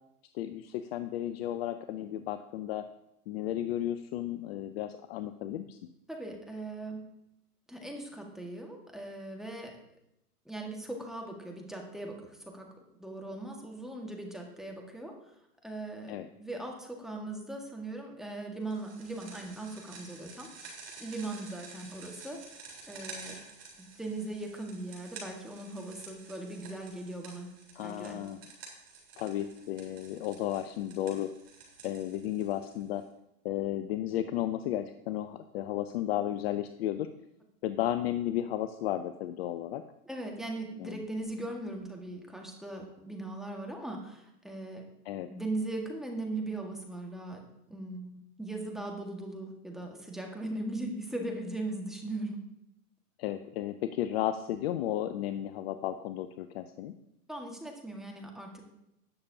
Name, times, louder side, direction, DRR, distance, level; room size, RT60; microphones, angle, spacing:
voice 1, 0.3-2.8 3.3-5.8 16.1-16.3 27.8-28.4 29.2-31.3 31.8-33.0 33.4-37.1 37.6-39.8 40.8-41.0 45.1-45.3 53.2-56.9, left 12 dB, 40° left, 10 dB, 0.5 m, -33 dB
voice 2, 6.1-7.1 7.7-9.8 10.4-12.7 13.0-15.2 15.6-20.7 21.0-22.4 22.9-23.4 23.8-27.5 27.8-28.2 40.0-44.8 45.3-47.4 47.7-52.4 57.3-58.7, right 2 dB, ahead, 0 dB, 1.6 m, -39 dB
sound 1, 18.7-33.0, right 4 dB, 30° right, 3.9 m, -50 dB
18.5 x 6.7 x 2.8 m, 0.83 s
hypercardioid pair, 120°, 47 cm